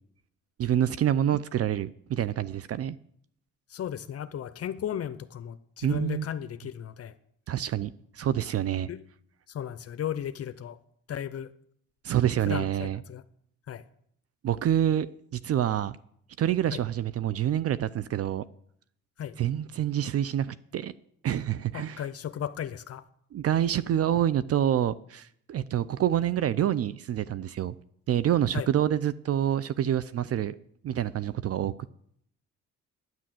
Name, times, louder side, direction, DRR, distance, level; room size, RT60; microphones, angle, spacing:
voice 1, 0.6-2.9 5.8-6.3 7.5-8.9 12.0-13.0 14.4-15.1 15.3-16.0 16.4-18.4 19.4-20.9 21.2-22.0 23.3-27.7 28.1-30.5 30.8-31.7, right 11 dB, 55° right, 0.5 m, -27 dB
voice 2, 3.7-7.1 8.9-9.0 9.5-10.8 11.1-11.5 12.4-13.2 13.7-13.8 16.7-16.8 19.2-19.3 21.7-23.0 28.5-28.7, left 9 dB, 50° left, 0.7 m, -35 dB
10.0 x 9.4 x 7.6 m
cardioid pair, 90°, 30 cm